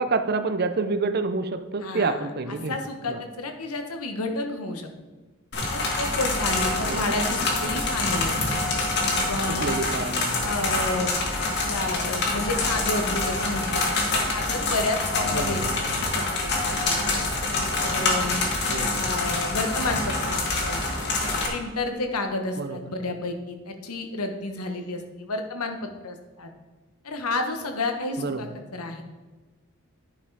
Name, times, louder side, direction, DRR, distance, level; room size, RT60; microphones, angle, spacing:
voice 1, 0.0-2.8 3.1-3.2 6.8-7.0 9.6-10.5 15.3-15.8 18.7-19.1 22.6-22.8 28.2-28.5, right 3 dB, 45° right, 10 dB, 0.5 m, -28 dB
voice 2, 1.8-4.9 5.7-8.4 9.1-9.7 10.4-11.2 11.5-15.6 15.9-16.9 17.5-18.4 19.0-20.8 21.2-26.5 27.0-29.0, left 2 dB, 90° left, 5 dB, 1.2 m, -31 dB
sound 1, 5.5-21.5, left 2 dB, 50° left, 1.6 m, -26 dB
10.0 x 5.5 x 4.7 m, 1.3 s
head